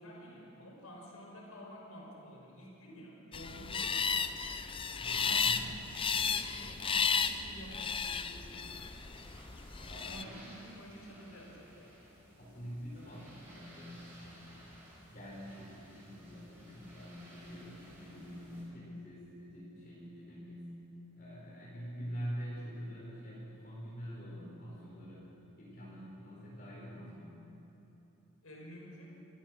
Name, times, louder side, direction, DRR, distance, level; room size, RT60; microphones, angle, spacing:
voice 1, 0.0-4.4 5.1-8.9 10.1-12.1 28.4-29.1, equal, 80° left, -1 dB, 5.2 m, -51 dB
sound 1, 3.3-10.2, left 6 dB, 25° left, 0.6 m, -34 dB
voice 2, 4.9-5.6 9.8-10.4 12.4-14.7 15.1-20.7 21.1-27.4, equal, 40° left, -6 dB, 4.6 m, -45 dB
sound 2, 8.4-18.6, right 1 dB, 10° right, 5.9 m, -56 dB
27.0 x 16.0 x 6.5 m, 3.0 s
head